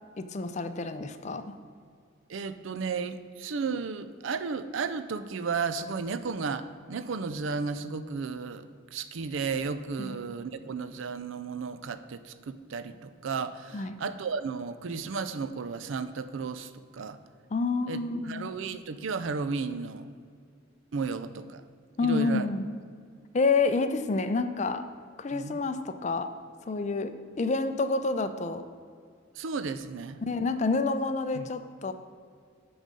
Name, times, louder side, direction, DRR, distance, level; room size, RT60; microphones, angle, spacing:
voice 1, 0.2-1.5 10.0-10.2 13.7-14.0 17.5-18.5 22.0-22.7 23.3-24.8 25.2-26.3 26.7-27.1 27.4-28.6 30.3-31.9, left 3 dB, 35° left, 10 dB, 0.4 m, -28 dB
voice 2, 2.3-8.6 8.9-17.2 17.9-20.1 20.9-21.6 22.0-22.5 25.3-25.6 29.4-30.2 31.3-31.5, right 5 dB, 75° right, 12 dB, 0.4 m, -34 dB
9.0 x 4.0 x 6.3 m, 2.1 s
head